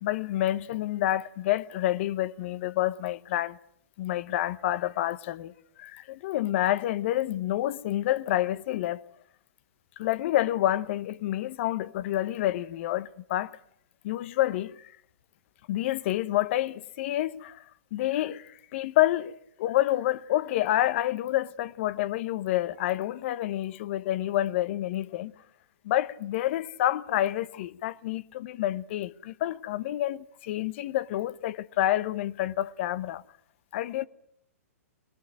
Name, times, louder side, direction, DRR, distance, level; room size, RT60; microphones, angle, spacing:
voice 1, 0.0-3.6 4.0-5.5 5.8-9.0 10.0-13.5 14.0-14.7 15.7-17.6 17.9-25.3 25.8-33.2 33.7-34.1, left 14 dB, 50° left, 1.0 m, -28 dB
22.0 x 20.5 x 8.8 m
hypercardioid pair, 130°, 8 cm